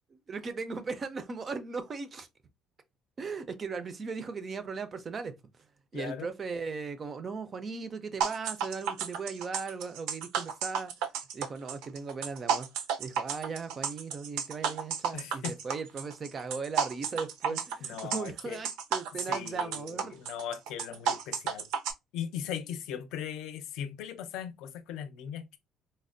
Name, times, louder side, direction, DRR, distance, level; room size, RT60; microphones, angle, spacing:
voice 1, 0.3-2.3 3.2-5.3 5.9-10.9 11.3-12.7 13.0-20.1, right 4 dB, 25° right, 0.4 m, -38 dB
voice 2, 5.9-6.3 15.1-15.5 17.5-18.6 19.3-21.7 22.1-25.6, left 9 dB, 65° left, 0.5 m, -39 dB
sound 1, 8.2-21.9, right 7 dB, 90° right, 0.5 m, -32 dB
4.1 x 2.1 x 2.5 m
cardioid pair, 175°, 0 cm